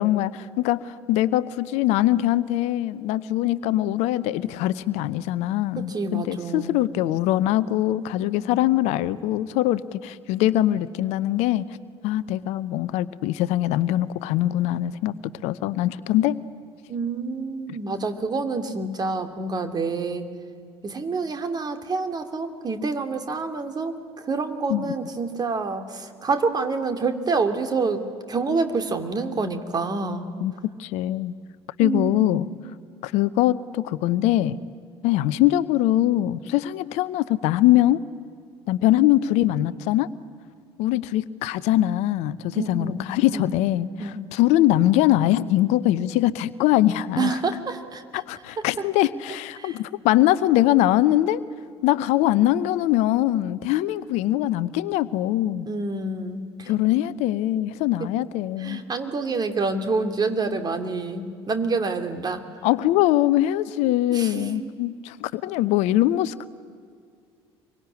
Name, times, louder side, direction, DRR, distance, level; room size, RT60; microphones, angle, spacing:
voice 1, 0.0-11.6 12.0-15.1 15.4-16.4 24.7-24.9 30.4-30.5 30.8-31.3 31.8-32.5 33.0-34.6 35.0-38.0 38.7-40.1 40.8-47.4 48.1-51.4 51.8-55.7 56.7-58.8 62.6-66.5, left 14 dB, 55° left, 17 dB, 0.8 m, -22 dB
voice 2, 5.7-6.8 8.2-8.6 16.9-20.3 20.8-24.0 24.2-30.3 31.8-32.4 42.5-43.5 44.0-44.2 47.2-48.2 49.6-49.8 55.7-56.7 58.0-58.1 58.6-62.5 63.8-64.7, right 4 dB, 30° right, 8 dB, 2.7 m, -28 dB
25.5 x 23.5 x 9.8 m, 2.2 s
figure-of-eight pair, 60°, 14 cm